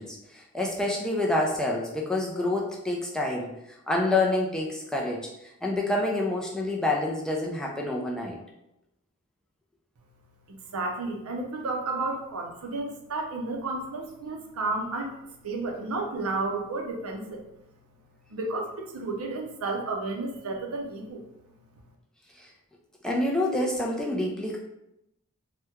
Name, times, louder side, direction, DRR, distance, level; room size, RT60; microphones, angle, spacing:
voice 1, 0.0-3.6 3.9-5.3 5.6-8.4 22.4-22.5 23.0-24.6, left 2 dB, 5° left, -2 dB, 0.3 m, -27 dB
voice 2, 10.5-15.1 15.4-17.5 18.3-21.2, right 3 dB, 75° right, 2 dB, 0.5 m, -32 dB
2.8 x 2.2 x 3.5 m, 0.86 s
head